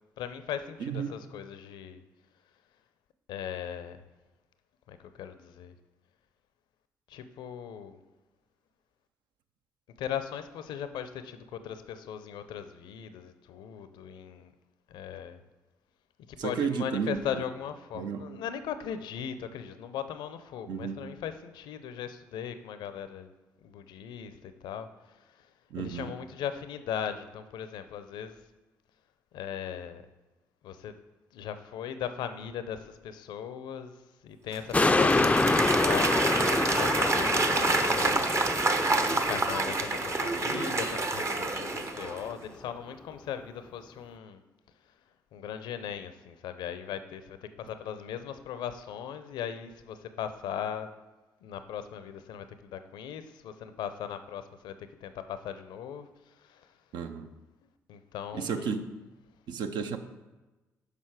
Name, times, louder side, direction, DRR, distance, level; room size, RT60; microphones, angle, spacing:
voice 1, 0.2-2.0 3.3-4.0 4.9-5.8 7.1-8.0 10.0-14.5 14.9-15.4 16.3-23.3 23.6-25.5 25.8-28.4 29.3-30.0 30.6-30.9 31.3-33.9 34.2-38.3 39.1-44.4 45.3-50.9 51.4-56.7 57.9-58.8, left 8 dB, 65° left, 11 dB, 0.5 m, -38 dB
voice 2, 0.8-1.1 16.4-17.4 17.9-18.3 20.7-21.0 25.7-26.1 56.9-57.3 58.3-58.8 59.5-60.0, right 6 dB, 65° right, 8 dB, 0.6 m, -32 dB
Applause / Crowd, 34.5-42.3, right 3 dB, 35° right, 0.8 m, -28 dB
sound 1, 34.7-41.4 41.8-41.9, left 2 dB, 15° left, 0.4 m, -27 dB
6.6 x 5.3 x 4.8 m, 1.1 s
hypercardioid pair, 45°, 8 cm